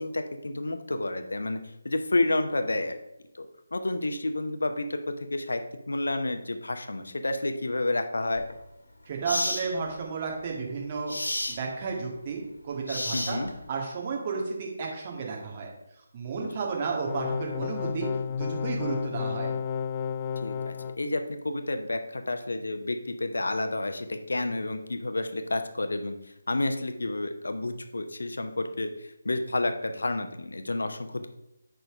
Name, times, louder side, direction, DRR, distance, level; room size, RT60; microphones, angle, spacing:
voice 1, 0.0-1.6 1.8-3.0 3.3-3.5 3.7-5.6 5.9-8.4 13.1-13.5 16.4-16.5 20.4-26.2 26.5-31.3, left 2 dB, 70° left, 7 dB, 0.9 m, -30 dB
sound 1, 8.4-8.5 9.3-9.7 11.1-11.6 12.9-13.6, left 1 dB, 85° left, 1.8 m, -31 dB
voice 2, 9.1-11.1 11.5-13.4 13.7-15.7 16.1-18.1 18.4-19.6, right 4 dB, 30° right, -1 dB, 1.9 m, -32 dB
sound 2, 17.1-21.0, left 7 dB, 25° left, 0.4 m, -32 dB
9.3 x 3.9 x 4.9 m, 0.86 s
figure-of-eight pair, 150°, 0 cm